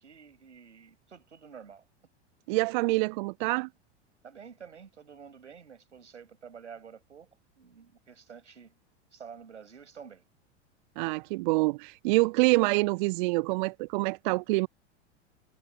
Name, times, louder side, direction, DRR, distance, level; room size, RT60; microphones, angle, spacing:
voice 1, 0.0-1.8 4.2-7.3 7.6-8.7 9.1-10.2, right 7 dB, 80° right, 5.6 m, -49 dB
voice 2, 2.5-3.7 11.0-14.7, right 24 dB, 45° right, 0.4 m, -26 dB
figure-of-eight pair, 85°, 35 cm